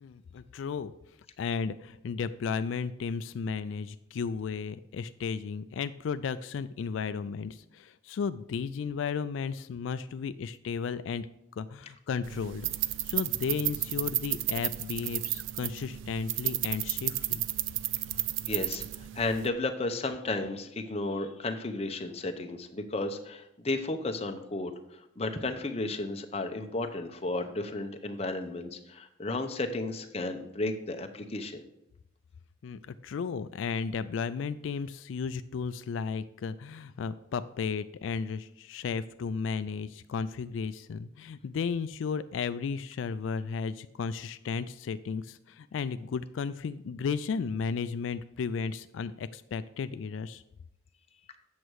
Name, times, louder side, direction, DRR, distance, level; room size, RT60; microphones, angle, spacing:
voice 1, 0.0-0.9 1.4-11.3 11.6-12.7 13.1-17.4 32.6-50.4, left 5 dB, 85° left, 13 dB, 0.3 m, -34 dB
sound 1, 12.2-19.5, right 15 dB, 80° right, 0.4 m, -33 dB
voice 2, 18.5-24.7 25.2-31.6, left 2 dB, 30° left, 6 dB, 0.7 m, -33 dB
8.2 x 6.4 x 4.7 m, 0.85 s
head